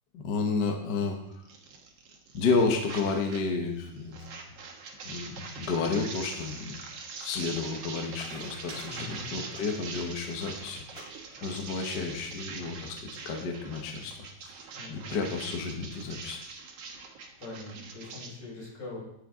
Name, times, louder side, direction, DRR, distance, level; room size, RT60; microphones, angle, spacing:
voice 1, 0.1-1.4 2.3-4.3 5.0-6.8 7.2-10.8 11.4-13.0 13.2-14.1 14.9-16.4, left 4 dB, 50° left, 2 dB, 1.3 m, -31 dB
sound 1, 1.5-3.5 3.8-18.3, right 4 dB, 60° right, 2.1 m, -43 dB
sound 2, 7.8-7.9 8.1-10.0 10.3-10.6 10.9-11.0 11.3-11.8 12.6-12.7, right 1 dB, 10° right, 2.7 m, -48 dB
voice 2, 8.7-9.3 14.8-15.2 17.4-19.0, left 3 dB, 70° left, -5 dB, 5.7 m, -42 dB
16.0 x 6.8 x 3.7 m, 0.81 s
omnidirectional pair, 3.3 m